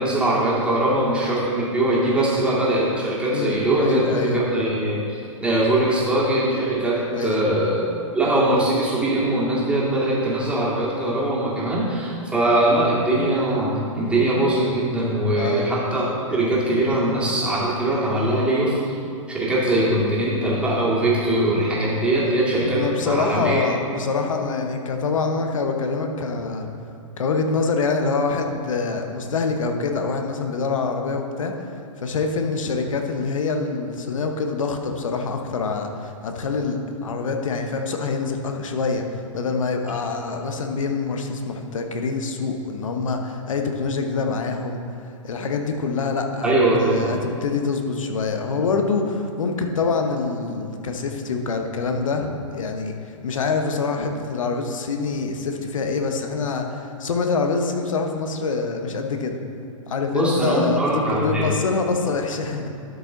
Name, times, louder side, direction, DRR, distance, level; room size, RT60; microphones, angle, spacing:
voice 1, 0.0-7.9 8.1-16.0 16.3-19.0 19.3-23.6 46.4-47.2 60.1-61.6, right 1 dB, 5° right, -7 dB, 2.1 m, -21 dB
voice 2, 3.3-4.5 7.1-7.5 15.3-15.7 19.8-19.9 22.7-26.7 27.2-31.5 32.0-44.8 45.2-46.5 46.8-59.4 59.9-62.7, left 4 dB, 70° left, 4 dB, 1.0 m, -25 dB
12.0 x 5.2 x 3.9 m, 2.4 s
hypercardioid pair, 120°, 17 cm